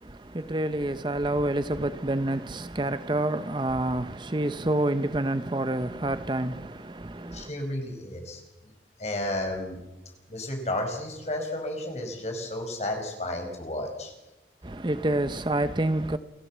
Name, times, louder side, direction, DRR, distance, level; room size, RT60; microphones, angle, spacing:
voice 1, 0.0-7.5 14.6-16.2, right 1 dB, 25° right, 0.7 m, -28 dB
voice 2, 7.3-8.4 9.0-9.8 10.3-14.1, left 1 dB, 40° left, 5.2 m, -32 dB
29.0 x 14.5 x 7.4 m
head